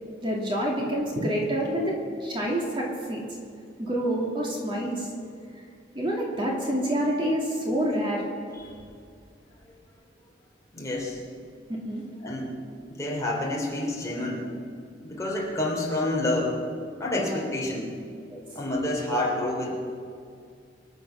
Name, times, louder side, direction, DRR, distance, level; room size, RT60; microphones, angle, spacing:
voice 1, 0.2-3.2 3.8-5.1 5.9-8.2 11.7-12.0 17.1-17.4 18.3-18.4, equal, 30° right, -2 dB, 2.4 m, -27 dB
voice 2, 10.7-11.2 12.2-12.6 12.9-14.5 15.0-16.6 17.0-17.9 18.5-19.7, left 1 dB, 20° left, -3 dB, 3.3 m, -28 dB
25.0 x 8.3 x 6.2 m, 2.2 s
head